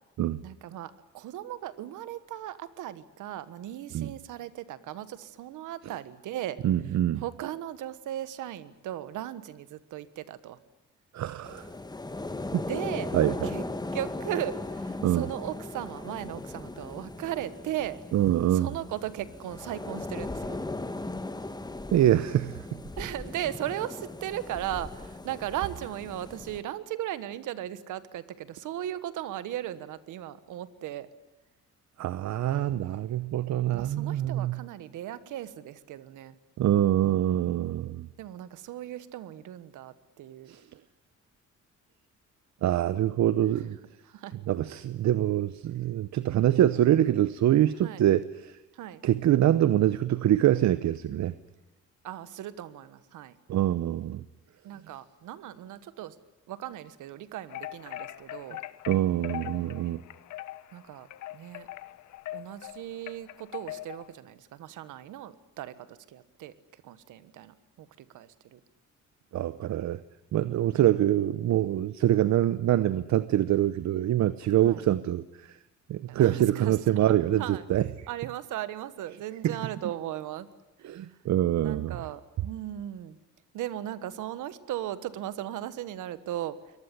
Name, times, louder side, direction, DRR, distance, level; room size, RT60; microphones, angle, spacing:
voice 1, 0.4-6.6 7.2-10.6 12.7-13.1 13.4-13.6 13.9-18.0 18.5-20.6 23.0-31.1 33.7-36.4 38.2-40.5 44.0-44.4 47.8-48.1 48.7-49.0 52.0-53.4 54.6-56.2 56.5-58.6 60.7-61.7 62.3-67.9 68.1-68.6 74.6-74.9 76.1-77.7 78.1-80.5 80.8-81.0 81.6-83.2 83.5-86.6, right 12 dB, 85° right, 14 dB, 1.4 m, -37 dB
voice 2, 6.6-7.2 11.1-11.7 12.5-12.6 13.1-13.5 15.0-15.3 18.1-18.7 21.9-22.6 32.0-34.6 36.6-38.1 40.5-40.6 42.6-43.8 44.5-48.6 49.0-51.3 53.5-54.2 58.9-60.0 69.3-70.0 70.3-75.2 75.9-77.9 79.4-79.5 80.8-82.0, right 12 dB, 65° right, 15 dB, 0.9 m, -25 dB
sound 1, 11.4-26.6, left 2 dB, 15° left, 1.5 m, -38 dB
sound 2, 57.5-64.1, left 15 dB, 75° left, 1.2 m, -41 dB
23.5 x 19.5 x 10.0 m, 0.99 s
cardioid pair, 90°, 30 cm